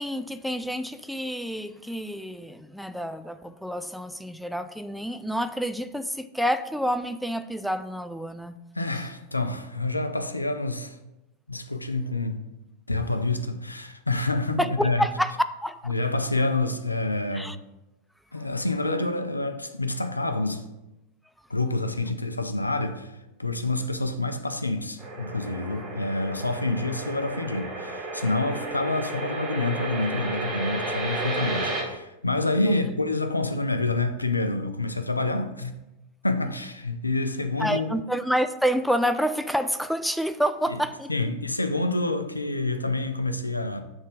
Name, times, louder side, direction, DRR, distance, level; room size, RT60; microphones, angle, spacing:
voice 1, 0.0-8.6 14.6-15.3 15.6-15.9 17.3-17.6 32.7-32.9 37.6-41.1, equal, ahead, 0.3 m, -28 dB
voice 2, 8.7-11.0 11.5-12.4 12.9-15.1 15.9-17.5 18.3-20.6 21.5-23.1 23.4-35.8 36.2-37.9 40.7-40.8 41.1-43.8, left 2 dB, 85° left, 0.5 m, -27 dB
sound 1, 25.0-31.8, right 2 dB, 15° right, 2.2 m, -33 dB
6.4 x 3.5 x 5.0 m
figure-of-eight pair, 90°, 0 cm